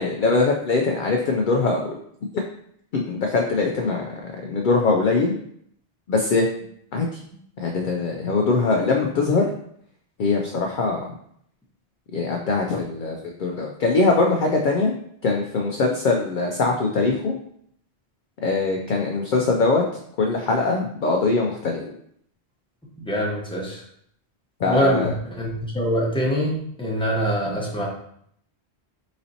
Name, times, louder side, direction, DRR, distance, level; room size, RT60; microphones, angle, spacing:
voice 1, 0.0-1.9 2.9-5.3 6.1-6.4 6.9-7.1 7.6-9.5 10.2-11.1 12.1-14.9 15.2-17.3 18.4-19.8 20.2-21.9 24.6-25.1, left 3 dB, 60° left, 1 dB, 0.6 m, -22 dB
voice 2, 23.1-23.8 24.7-27.9, equal, 5° left, -4 dB, 0.9 m, -24 dB
4.1 x 4.0 x 2.7 m, 0.68 s
omnidirectional pair, 1.1 m